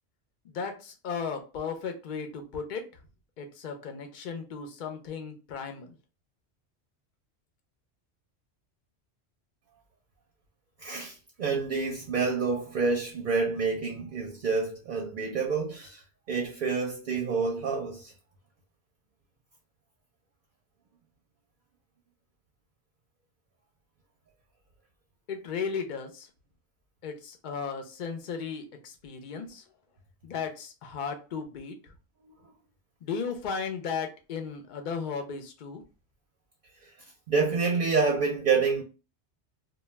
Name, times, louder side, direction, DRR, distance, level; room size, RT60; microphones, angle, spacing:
voice 1, 0.4-2.8 3.4-5.9 25.3-26.3 27.0-29.6 30.2-31.8 33.0-35.8, left 5 dB, 50° left, 0.6 m, -35 dB
voice 2, 10.8-16.0 16.3-18.1 37.3-38.8, right 4 dB, 55° right, 0.7 m, -28 dB
2.3 x 2.2 x 3.1 m
omnidirectional pair, 1.1 m